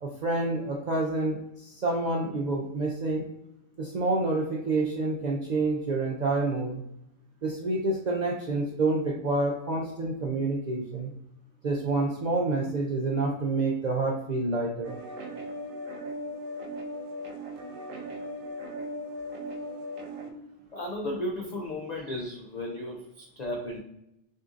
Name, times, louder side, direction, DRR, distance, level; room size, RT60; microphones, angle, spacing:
voice 1, 0.0-3.2 3.8-6.8 7.4-11.1 11.6-14.9, right 2 dB, 60° right, -1 dB, 0.4 m, -28 dB
sound 1, 14.8-20.3, equal, 85° right, 1.1 m, -38 dB
voice 2, 20.7-23.8, left 1 dB, 65° left, 1 dB, 0.4 m, -34 dB
6.2 x 2.5 x 2.5 m, 0.85 s
omnidirectional pair, 1.3 m